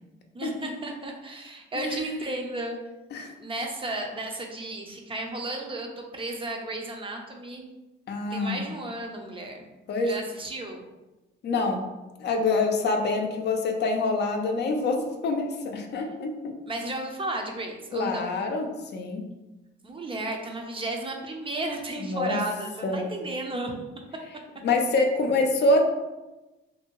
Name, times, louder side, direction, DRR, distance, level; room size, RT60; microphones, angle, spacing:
voice 1, 0.3-2.8 3.4-7.7 8.3-9.6 10.0-10.9 16.7-18.3 19.8-23.8, right 2 dB, 25° right, 2 dB, 0.5 m, -33 dB
voice 2, 1.7-2.1 3.1-3.3 8.1-8.6 9.9-10.1 11.4-11.8 12.2-16.5 17.9-19.2 22.0-22.4 22.8-23.1 24.6-25.8, left 2 dB, 60° left, 3 dB, 0.5 m, -26 dB
2.7 x 2.6 x 2.9 m, 1.1 s
cardioid pair, 90°, 20 cm